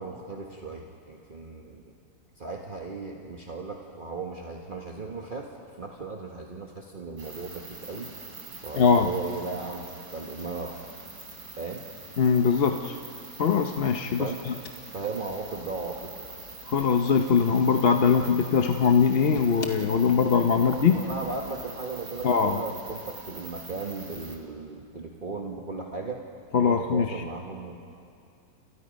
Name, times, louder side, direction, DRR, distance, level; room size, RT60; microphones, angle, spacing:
voice 1, 0.0-1.9 2.4-8.1 8.6-9.9 10.1-10.8 11.6-11.8 14.2-14.4 14.9-16.1 20.9-26.2 26.6-27.8, right 3 dB, 35° right, 0 dB, 1.6 m, -36 dB
sound 1, 7.2-24.4, right 3 dB, 90° right, 3.9 m, -44 dB
voice 2, 8.8-9.1 12.2-13.0 13.4-14.5 16.7-21.0 22.2-22.6 26.5-27.2, left 6 dB, 45° left, 5 dB, 0.9 m, -22 dB
29.5 x 28.0 x 5.3 m, 2.5 s
omnidirectional pair, 1.6 m